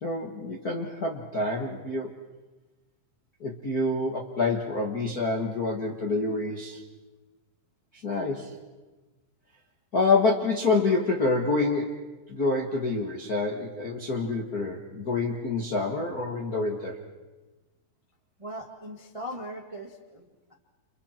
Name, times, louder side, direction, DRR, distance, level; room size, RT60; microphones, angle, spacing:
voice 1, 0.0-2.1 3.4-6.8 8.0-8.5 9.9-17.0, left 3 dB, 50° left, 1 dB, 1.0 m, -27 dB
voice 2, 18.4-20.5, equal, 25° right, 2 dB, 0.7 m, -39 dB
30.0 x 29.5 x 4.5 m, 1.2 s
omnidirectional pair, 4.5 m